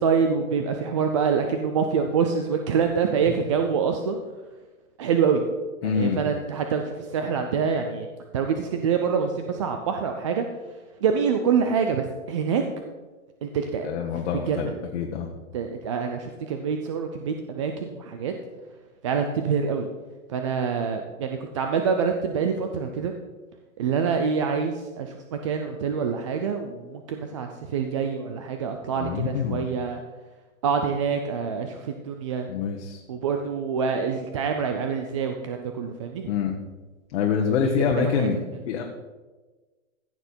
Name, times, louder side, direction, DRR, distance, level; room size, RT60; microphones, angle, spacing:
voice 1, 0.0-4.2 5.0-5.4 5.8-8.1 8.3-10.4 11.0-12.6 13.4-13.9 14.5-14.7 15.5-18.3 19.0-19.9 20.3-23.1 23.8-30.0 30.6-32.5 33.1-36.3 37.5-38.3, right 6 dB, 25° right, 5 dB, 0.3 m, -26 dB
voice 2, 5.8-6.2 13.8-15.3 29.0-29.6 32.5-33.0 36.3-36.6 37.1-38.4 38.7-38.8, left 7 dB, 55° left, 0 dB, 1.4 m, -26 dB
14.5 x 6.7 x 4.4 m, 1.3 s
hypercardioid pair, 150°, 40 cm